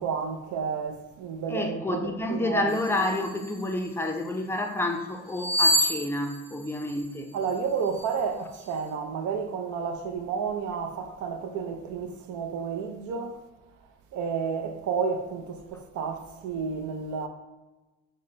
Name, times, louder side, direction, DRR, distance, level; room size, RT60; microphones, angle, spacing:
voice 1, 0.0-2.8 7.3-13.4 14.1-17.3, right 6 dB, 85° right, 0.5 m, -31 dB
voice 2, 1.5-7.3, left 2 dB, 10° left, 0.4 m, -29 dB
sound 1, 2.7-4.2 5.3-7.5 7.9-8.1, equal, 70° right, 1.0 m, -28 dB
5.7 x 2.1 x 3.2 m
cardioid pair, 90°, 30 cm